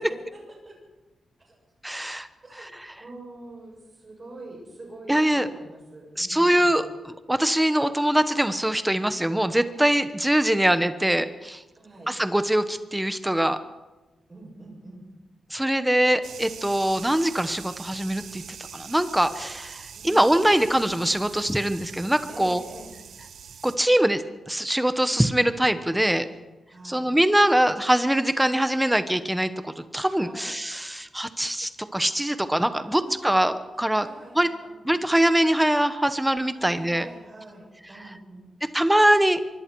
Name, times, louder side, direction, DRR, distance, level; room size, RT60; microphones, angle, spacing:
voice 1, 0.1-0.8 1.4-1.6 2.4-6.8 11.7-12.1 14.3-15.1 19.9-20.4 22.3-23.0 25.8-26.4 26.7-27.1 30.2-30.5 32.7-33.4 33.7-35.1 36.5-38.5, right 2 dB, 25° right, -1 dB, 7.6 m, -45 dB
voice 2, 1.8-2.3 5.1-5.5 6.2-11.6 12.1-13.6 15.5-18.4 18.7-22.6 23.6-26.3 26.8-34.0 34.4-34.5 34.8-37.0 38.7-39.4, right 1 dB, 5° right, 11 dB, 1.0 m, -23 dB
sound 1, 16.2-23.8, right 7 dB, 80° right, 1.5 m, -43 dB
25.0 x 24.0 x 4.7 m, 1.1 s
wide cardioid pair, 175°, 0 cm